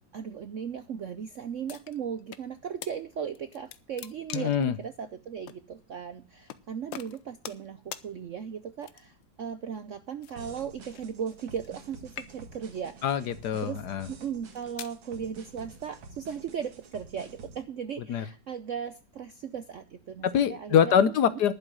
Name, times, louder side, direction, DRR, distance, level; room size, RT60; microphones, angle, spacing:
voice 1, 0.1-13.0 13.6-13.8 14.1-20.9 21.3-21.4, right 7 dB, 65° right, 10 dB, 0.7 m, -37 dB
sound 1, 1.7-2.5 2.8-2.9 3.4-4.7 5.5-5.6 6.5-6.6 6.9-7.7 7.9-8.1 8.8-9.2 10.2-11.8 12.1-12.7 13.4-13.6 14.3-15.0, left 11 dB, 80° left, 1.5 m, -43 dB
voice 2, 4.3-4.7 13.0-14.1 18.1-18.2 20.2-21.5, left 8 dB, 65° left, 14 dB, 1.3 m, -24 dB
sound 2, 10.3-17.6, right 4 dB, 90° right, 2.4 m, -49 dB
11.5 x 5.7 x 8.5 m, 0.36 s
omnidirectional pair, 2.1 m